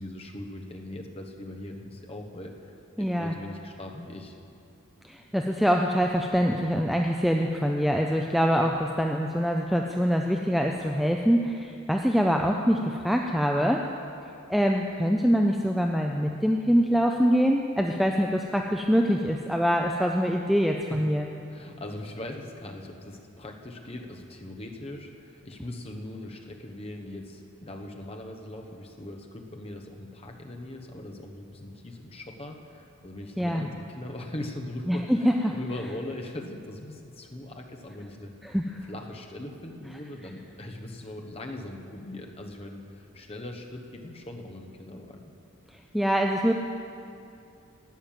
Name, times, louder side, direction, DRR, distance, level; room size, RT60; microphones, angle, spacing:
voice 1, 0.0-4.4 20.9-21.0 21.5-38.3 38.8-45.2, left 1 dB, 25° left, 2 dB, 1.0 m, -40 dB
voice 2, 3.0-3.3 5.0-13.8 14.5-21.2 33.4-33.7 34.9-35.5 38.4-38.7 45.9-46.5, equal, ahead, 2 dB, 0.4 m, -24 dB
12.0 x 9.0 x 7.3 m, 2.6 s
head